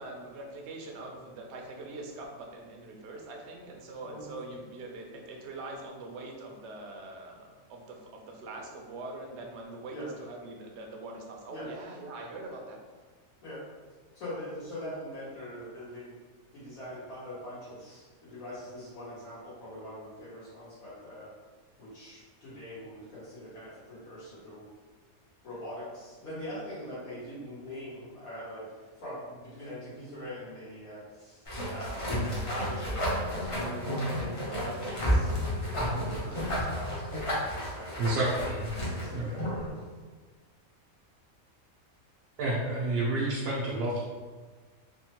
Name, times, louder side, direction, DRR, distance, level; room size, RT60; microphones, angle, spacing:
voice 1, 0.0-12.8, right 2 dB, 65° right, 1 dB, 0.7 m, -43 dB
voice 2, 4.0-4.3 9.9-10.1 11.5-11.7 13.4-13.6 14.1-16.1 16.5-21.3 21.8-24.6 25.4-35.3 35.7-38.1 38.8-39.7, equal, 80° left, -10 dB, 1.5 m, -42 dB
sound 1, 31.4-39.7, equal, 35° left, 0.5 m, -31 dB
voice 3, 38.0-38.7 39.1-39.3 42.4-44.0, right 2 dB, 90° right, -7 dB, 1.1 m, -29 dB
3.5 x 2.1 x 2.8 m, 1.4 s
omnidirectional pair, 1.5 m